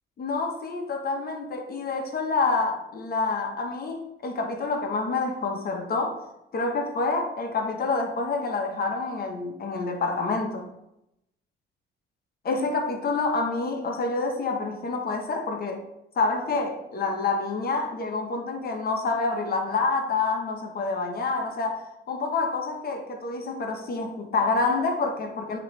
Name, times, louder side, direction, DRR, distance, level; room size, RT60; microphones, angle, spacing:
voice 1, 0.2-6.2 6.5-10.7 12.4-15.8 16.2-25.6, left 3 dB, 50° left, 1.2 m, -27 dB
9.0 x 3.2 x 3.2 m
cardioid pair, 90°, 20 cm